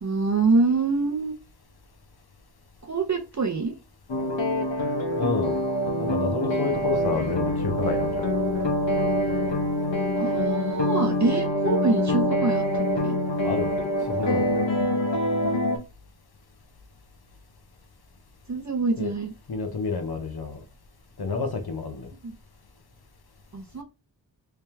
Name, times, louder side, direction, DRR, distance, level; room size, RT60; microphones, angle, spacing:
voice 1, 0.0-1.3 2.8-3.7 10.2-12.6 13.0-13.2 15.4-15.6 18.5-19.3 22.2-22.4 23.5-23.8, right 3 dB, 40° right, 0.7 m, -25 dB
sound 1, 4.1-15.8, left 1 dB, 90° left, 1.0 m, -25 dB
voice 2, 5.2-5.6 6.0-8.3 13.4-13.8 14.1-14.6 19.0-19.1 19.5-20.6 21.2-22.1, left 4 dB, 55° left, 0.9 m, -29 dB
3.4 x 2.9 x 3.3 m
wide cardioid pair, 95°, 44 cm